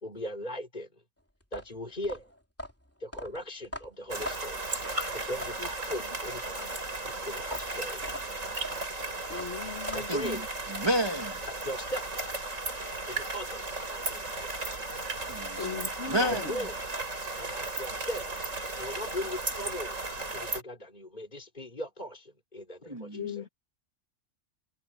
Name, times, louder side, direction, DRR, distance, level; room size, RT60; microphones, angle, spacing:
voice 1, 0.0-1.0 1.5-2.3 3.0-4.6 5.1-6.8 7.0-8.0 9.9-10.4 11.6-12.3 13.1-14.6 16.1-16.7 17.4-18.3 18.8-23.4, left 1 dB, 35° left, 4.3 m, -39 dB
sound 1, 1.4-5.7 7.4-10.3, left 1 dB, 10° left, 3.1 m, -42 dB
sound 2, 4.1-20.6, right 2 dB, 90° right, 4.7 m, -35 dB
voice 2, 9.3-10.1 15.6-16.5 23.1-23.5, left 6 dB, 60° left, 1.6 m, -38 dB
voice 3, 10.7-11.4 15.3-15.8 16.1-16.7 22.9-23.3, equal, 20° right, 2.1 m, -30 dB
omnidirectional pair, 1.3 m